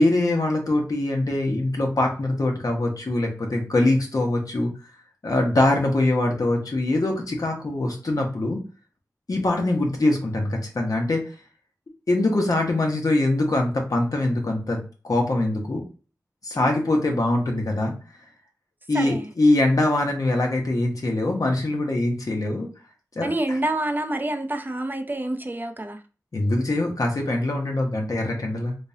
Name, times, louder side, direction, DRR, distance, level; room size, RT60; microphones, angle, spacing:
voice 1, 0.0-4.7 5.2-8.6 9.3-11.3 12.1-15.8 16.4-17.9 18.9-22.7 23.1-23.6 26.3-28.8, left 2 dB, 65° left, 1.1 m, -23 dB
voice 2, 18.9-19.3 23.2-26.0, right 1 dB, 30° right, 0.5 m, -27 dB
3.5 x 3.3 x 2.7 m
wide cardioid pair, 60°, 7 cm